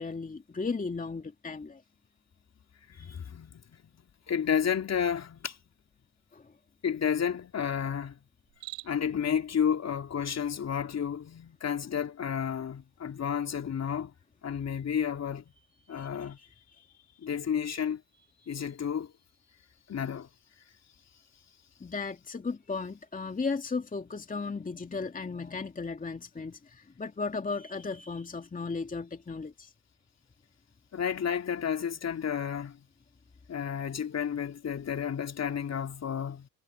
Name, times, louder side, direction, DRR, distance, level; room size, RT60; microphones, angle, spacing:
voice 1, 0.0-1.8 2.9-3.2 6.3-6.5 15.9-17.0 18.6-18.7 21.8-29.7, left 4 dB, 15° left, 2.4 m, -36 dB
voice 2, 3.0-3.6 4.3-5.6 6.8-8.2 8.8-14.1 14.4-15.5 15.9-16.4 17.2-18.0 18.5-19.1 19.9-20.3 30.9-32.8 33.5-36.5, left 8 dB, 30° left, 3.1 m, -31 dB
Cricket, 8.4-9.2, right 39 dB, 70° right, 7.8 m, -44 dB
hypercardioid pair, 80°, 50 cm